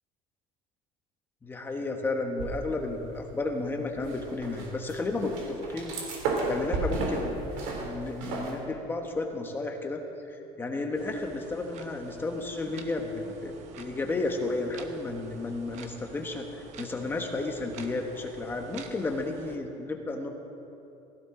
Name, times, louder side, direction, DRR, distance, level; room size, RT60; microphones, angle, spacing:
voice 1, 1.4-5.9 6.5-10.0 10.3-20.3, left 2 dB, 15° left, 3 dB, 1.2 m, -33 dB
sound 1, 2.4-3.1 3.4-8.6, right 3 dB, 80° right, 3.2 m, -33 dB
sound 2, 10.9-19.6, right 6 dB, 50° right, 1.0 m, -49 dB
16.5 x 15.5 x 3.8 m, 2.9 s
cardioid pair, 160°, 15 cm